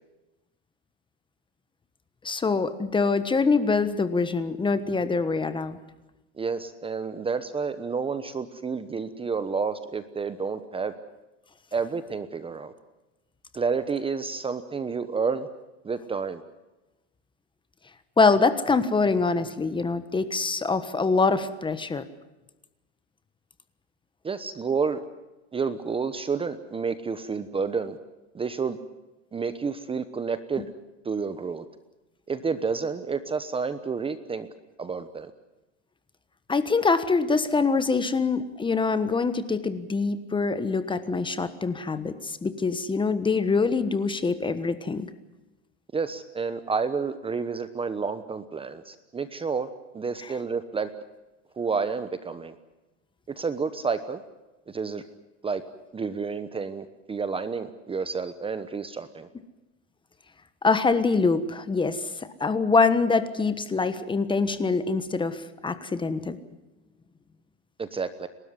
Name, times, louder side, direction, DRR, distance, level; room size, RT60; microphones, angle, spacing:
voice 1, 2.2-5.8 18.2-22.1 36.5-45.1 60.6-66.4, left 4 dB, 15° left, 12 dB, 1.3 m, -24 dB
voice 2, 6.4-10.9 11.7-12.7 13.5-15.5 15.8-16.4 24.2-25.0 25.5-28.0 28.3-28.8 29.3-30.6 31.0-31.6 32.3-34.5 34.8-35.3 45.9-49.7 49.9-50.9 51.6-52.6 53.4-54.2 54.7-55.0 55.4-55.6 55.9-59.3 67.8-68.3, right 5 dB, 15° right, 12 dB, 1.1 m, -30 dB
30.0 x 13.0 x 9.7 m, 1.0 s
supercardioid pair, 125°, 36 cm